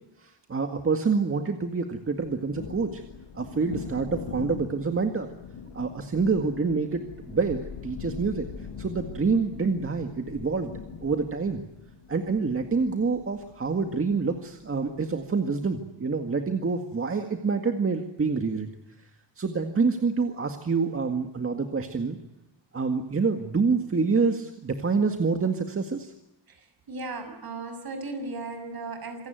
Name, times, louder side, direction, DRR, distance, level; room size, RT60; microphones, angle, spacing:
voice 1, 0.2-3.0 3.3-5.3 5.7-10.7 11.0-11.6 12.1-18.7 19.4-22.2 22.7-26.1, right 4 dB, 30° right, 5 dB, 2.0 m, -27 dB
Thunder, 2.0-15.2, left 6 dB, 75° left, 5.9 m, -42 dB
voice 2, 26.5-29.3, right 3 dB, 55° right, 7 dB, 6.6 m, -36 dB
27.5 x 17.5 x 9.3 m, 0.90 s
wide cardioid pair, 140°, 43 cm